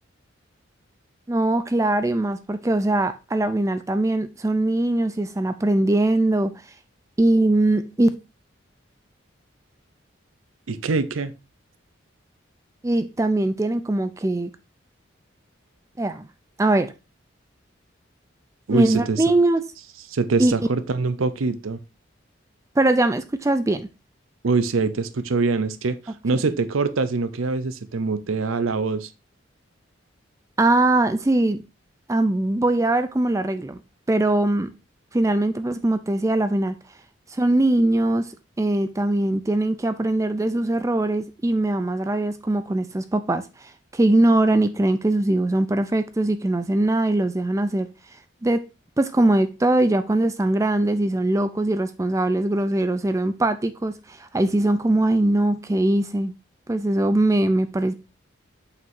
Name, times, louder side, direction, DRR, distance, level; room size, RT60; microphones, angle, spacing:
voice 1, 1.3-6.5 7.2-8.1 12.8-14.5 16.0-16.3 16.6-16.9 18.7-19.6 20.4-20.5 22.8-23.9 26.3-26.4 30.6-31.6 32.1-33.8 34.1-34.7 35.1-36.7 37.3-38.3 38.6-47.9 48.4-48.6 49.0-56.3 56.7-57.9, right 1 dB, 15° right, 0.4 m, -21 dB
voice 2, 10.7-11.3 18.7-19.2 20.1-21.8 24.4-29.1, right 4 dB, 90° right, 0.6 m, -24 dB
7.6 x 5.8 x 2.6 m
head